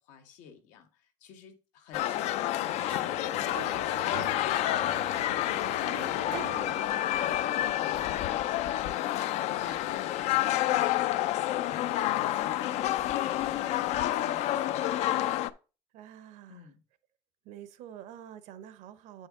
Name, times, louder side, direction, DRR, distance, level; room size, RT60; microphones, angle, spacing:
voice 1, 0.0-4.9 5.5-11.1 11.7-15.2 16.5-16.8, left 7 dB, 85° left, 1.3 m, -51 dB
sound 1, 1.9-15.5, left 13 dB, 60° left, 0.4 m, -29 dB
Sliding door, 2.6-7.4, right 14 dB, 60° right, 0.4 m, -45 dB
voice 2, 5.8-6.8 15.9-16.7 17.4-19.3, right 9 dB, 75° right, 0.8 m, -47 dB
8.3 x 5.5 x 3.6 m
cardioid pair, 155°, 12 cm